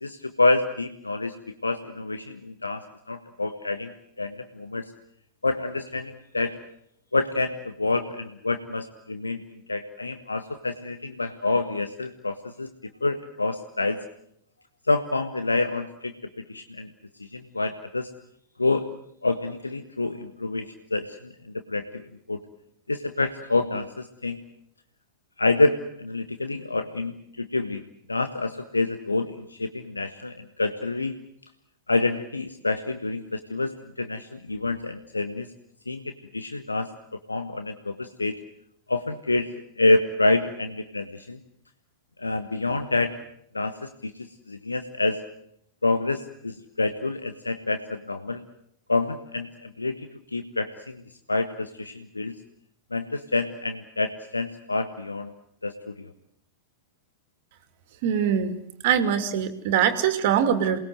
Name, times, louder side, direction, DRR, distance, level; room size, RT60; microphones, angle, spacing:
voice 1, 0.0-1.3 1.6-4.9 5.4-6.5 7.1-9.4 9.7-12.7 13.0-14.0 14.9-16.1 16.5-16.9 17.2-18.1 18.6-18.9 19.2-22.0 22.3-22.4 22.9-24.4 25.4-27.8 28.1-31.2 31.9-35.5 35.9-36.9 37.3-38.3 38.9-41.4 42.2-43.1 43.5-45.2 45.8-48.4 48.9-51.0 51.3-52.3 52.9-55.3 55.6-56.1, left 2 dB, 80° left, 9 dB, 1.2 m, -27 dB
voice 2, 58.0-58.6 58.8-60.8, right 8 dB, 50° right, 9 dB, 2.6 m, -22 dB
27.5 x 20.5 x 7.9 m, 0.73 s
figure-of-eight pair, 90°, 0 cm